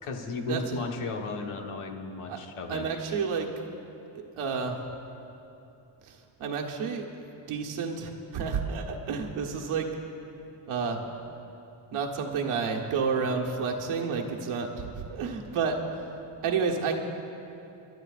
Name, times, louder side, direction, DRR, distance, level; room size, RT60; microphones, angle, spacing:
voice 1, 0.0-3.3, left 3 dB, 90° left, 2 dB, 1.4 m, -35 dB
voice 2, 2.7-3.5 4.3-4.8 6.1-7.1 7.5-9.9 10.7-11.1 11.9-15.8 16.4-16.9, right 5 dB, 85° right, 1 dB, 1.4 m, -30 dB
29.5 x 12.0 x 2.5 m, 2.9 s
cardioid pair, 130°, 49 cm